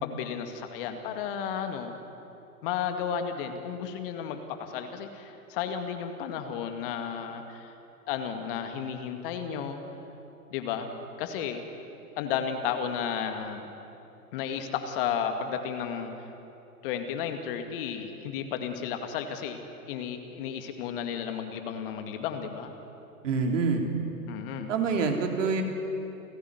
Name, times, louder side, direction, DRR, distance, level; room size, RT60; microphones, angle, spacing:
voice 1, 0.0-2.0 2.6-7.7 8.1-9.8 10.5-10.9 11.2-11.6 12.2-13.7 14.3-16.1 16.8-19.6 19.9-22.7 24.3-24.7, left 8 dB, 35° left, 6 dB, 2.2 m, -33 dB
voice 2, 23.2-23.9 24.7-25.6, right 4 dB, 55° right, 3 dB, 3.6 m, -26 dB
29.5 x 16.5 x 9.7 m, 2.9 s
figure-of-eight pair, 120°, 46 cm